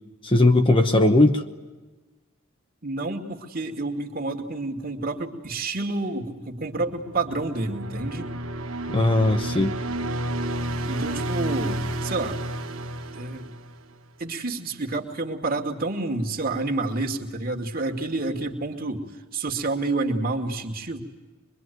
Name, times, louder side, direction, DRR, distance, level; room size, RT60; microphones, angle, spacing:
voice 1, 0.2-1.4 8.9-9.7, left 2 dB, 25° left, 6 dB, 1.1 m, -18 dB
voice 2, 2.8-8.3 10.9-12.4 13.1-13.6 14.2-19.0 19.3-21.0, right 2 dB, 40° right, 3 dB, 2.4 m, -29 dB
sound 1, 6.6-14.0, right 1 dB, 65° right, 1.9 m, -31 dB
25.0 x 23.0 x 9.4 m, 1.2 s
head